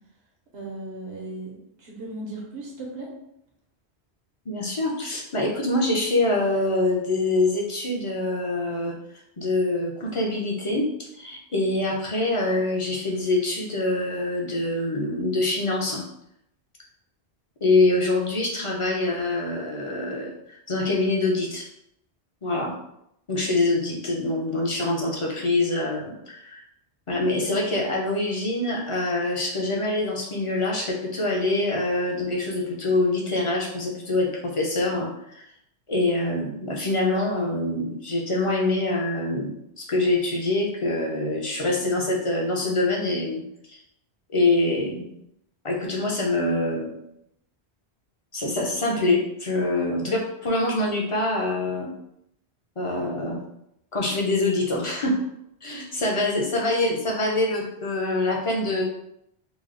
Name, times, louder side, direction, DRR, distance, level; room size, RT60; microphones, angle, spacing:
voice 1, 0.5-3.1, right 2 dB, 90° right, -3 dB, 1.1 m, -36 dB
voice 2, 4.5-8.9 9.4-10.9 11.1-16.0 17.6-21.6 22.4-22.7 23.3-26.6 27.1-35.4 35.9-43.4 43.7-43.8 44.3-45.2 45.6-47.0 48.3-51.9 52.8-53.4 53.9-55.2 55.6-58.8, left 2 dB, 40° left, -2 dB, 0.4 m, -25 dB
3.0 x 2.0 x 3.7 m, 0.77 s
omnidirectional pair, 1.1 m